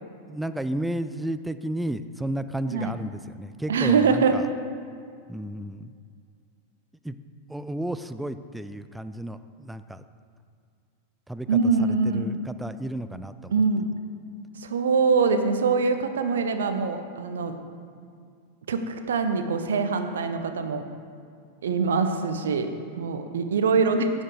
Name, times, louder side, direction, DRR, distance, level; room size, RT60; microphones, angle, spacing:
voice 1, 0.3-4.4 5.3-6.0 7.0-7.2 7.5-10.0 11.3-11.5 12.1-13.5, right 1 dB, 5° right, 12 dB, 0.3 m, -32 dB
voice 2, 3.7-4.4 11.5-12.3 13.5-13.9 14.6-17.5 18.7-20.8 21.6-24.1, right 4 dB, 65° right, 7 dB, 0.7 m, -23 dB
9.8 x 7.3 x 4.9 m, 2.2 s
figure-of-eight pair, 90°, 0 cm